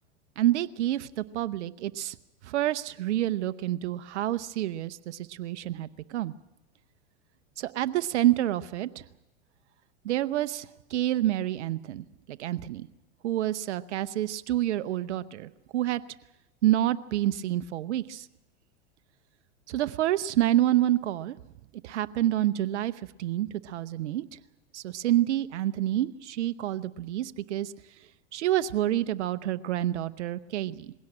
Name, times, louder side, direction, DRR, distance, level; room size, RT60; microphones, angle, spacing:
voice 1, 0.4-2.1 2.4-6.3 7.6-9.0 10.0-12.9 13.2-16.0 16.6-18.3 19.7-21.4 21.8-22.9 23.2-24.4 24.7-27.7 28.3-30.9, right 13 dB, 80° right, 13 dB, 0.8 m, -28 dB
21.0 x 17.0 x 8.7 m, 0.97 s
hypercardioid pair, 110°, 35 cm